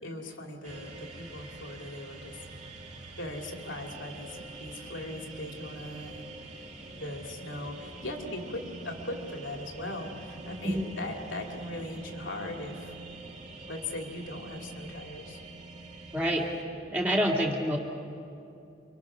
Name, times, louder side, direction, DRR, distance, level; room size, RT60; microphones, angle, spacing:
voice 1, 0.0-2.4 3.2-6.7 7.0-12.9 13.7-15.4, left 1 dB, 80° left, 2 dB, 3.0 m, -39 dB
sound 1, 0.6-16.6, right 2 dB, 35° right, 2.4 m, -45 dB
voice 2, 16.1-16.5 16.9-17.8, equal, 10° right, -2 dB, 2.1 m, -26 dB
28.5 x 24.5 x 6.2 m, 2.6 s
head